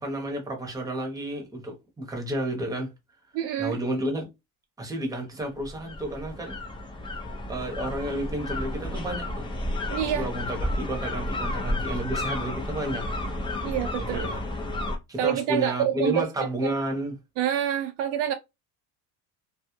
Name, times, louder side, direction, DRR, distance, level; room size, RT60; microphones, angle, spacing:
voice 1, 0.0-2.9 3.6-4.3 4.8-6.6 7.5-9.5 10.1-13.0 14.0-14.4 15.1-17.1, right 1 dB, 5° right, 0.7 m, -31 dB
voice 2, 3.3-3.8 9.9-10.3 13.6-14.3 15.2-16.8 17.4-18.3, right 10 dB, 55° right, 0.5 m, -27 dB
sound 1, 5.6-15.0, left 1 dB, 10° left, 0.3 m, -32 dB
2.3 x 2.0 x 2.9 m
cardioid pair, 115°, 49 cm